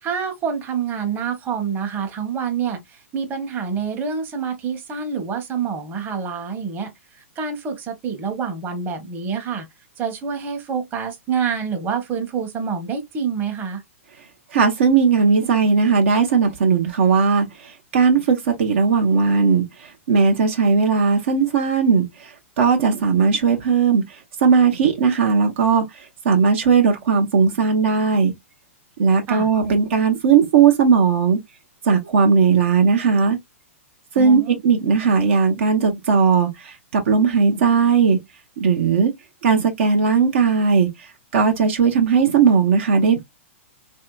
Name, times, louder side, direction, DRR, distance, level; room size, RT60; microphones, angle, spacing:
voice 1, 0.0-9.7 10.0-13.8 29.3-29.5 34.2-34.6, right 6 dB, 25° right, 1.0 m, -27 dB
voice 2, 14.5-28.3 29.0-31.4 31.8-33.4 34.1-38.2 38.6-39.1 39.4-43.2, right 5 dB, 60° right, 0.7 m, -18 dB
3.3 x 2.7 x 2.2 m
hypercardioid pair, 115°, 7 cm